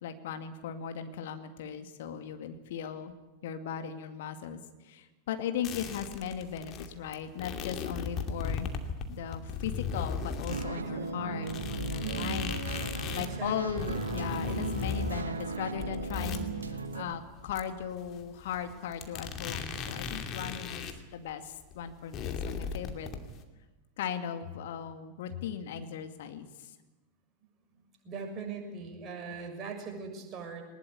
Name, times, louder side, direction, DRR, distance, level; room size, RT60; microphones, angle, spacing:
voice 1, 0.0-3.1 3.4-4.6 4.8-8.7 9.1-12.7 13.1-20.8 21.1-23.1 24.0-26.7, left 8 dB, 55° left, 7 dB, 2.3 m, -38 dB
sound 1, 5.6-10.6 11.1-11.2 11.5-21.0 21.3-21.4 21.6-23.4, left 6 dB, 35° left, 2.5 m, -37 dB
sound 2, 10.5-17.1, right 3 dB, 75° right, 1.6 m, -37 dB
voice 2, 10.7-11.1 12.0-12.4 13.1-13.9 27.7-30.6, right 5 dB, 25° right, 2 dB, 6.6 m, -41 dB
21.0 x 20.0 x 9.6 m, 1.1 s
figure-of-eight pair, 90°, 0 cm